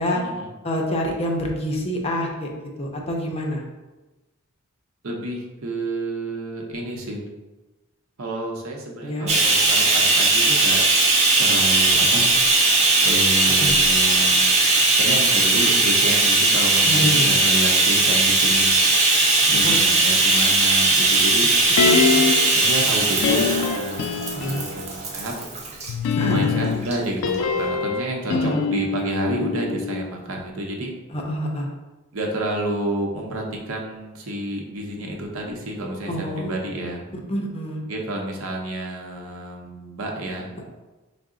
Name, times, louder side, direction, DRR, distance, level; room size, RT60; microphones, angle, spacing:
voice 1, 0.1-0.5 5.0-7.3 8.2-10.8 11.4-12.3 13.0-14.7 15.0-18.8 19.4-21.5 22.5-25.3 26.2-30.9 32.1-37.1 37.9-40.5, right 1 dB, 75° right, 0 dB, 0.7 m, -30 dB
voice 2, 0.6-2.5 2.8-3.6 9.0-9.3 13.6-13.7 16.9-17.3 19.6-19.9 21.8-22.3 24.3-24.6 26.2-26.6 28.3-28.6 31.1-31.7 36.1-36.5 37.3-37.8, equal, 30° left, 0 dB, 0.5 m, -26 dB
Bathtub (filling or washing), 9.3-25.9 26.8-27.0 27.3-27.4, right 2 dB, 30° right, 0.5 m, -18 dB
sound 1, 21.8-22.6 23.2-24.9 25.9-30.1 30.4-30.5, left 5 dB, 90° left, 0.3 m, -24 dB
4.7 x 2.0 x 3.6 m, 1.1 s
head